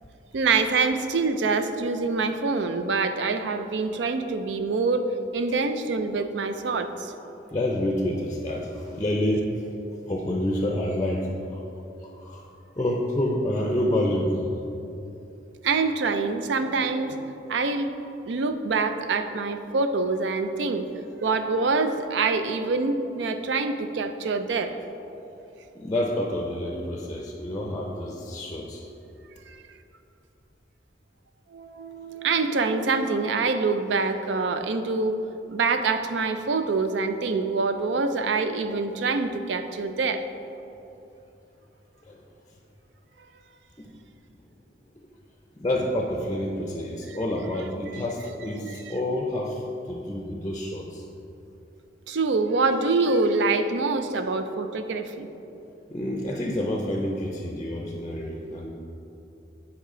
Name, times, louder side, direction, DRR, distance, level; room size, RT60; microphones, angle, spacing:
voice 1, 0.3-5.0 5.3-7.1 9.9-10.1 15.6-17.2 17.5-17.9 18.3-20.9 21.2-24.8 29.5-29.6 31.5-35.2 35.5-40.2 47.1-47.2 52.1-55.3, right 4 dB, 75° right, 9 dB, 0.4 m, -25 dB
voice 2, 7.5-9.8 10.1-11.6 12.0-12.5 12.8-14.5 25.7-28.8 42.1-42.2 43.8-43.9 45.6-51.0 55.9-58.7, left 1 dB, 20° left, 0 dB, 0.5 m, -28 dB
8.6 x 4.8 x 3.7 m, 2.9 s
head